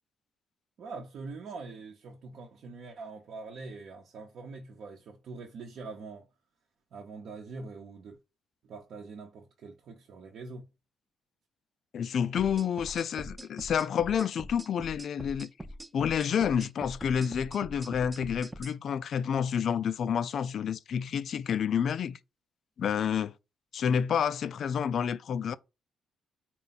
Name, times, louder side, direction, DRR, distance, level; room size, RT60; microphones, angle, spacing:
voice 1, 0.8-6.3 6.9-8.2 8.6-10.7, right 4 dB, 65° right, 0.8 m, -44 dB
voice 2, 11.9-15.5 15.9-22.2 22.8-23.3 23.7-25.5, left 8 dB, 60° left, 0.3 m, -29 dB
sound 1, 12.4-18.7, equal, 10° right, 0.4 m, -43 dB
4.3 x 2.2 x 3.9 m
cardioid pair, 90°, 0 cm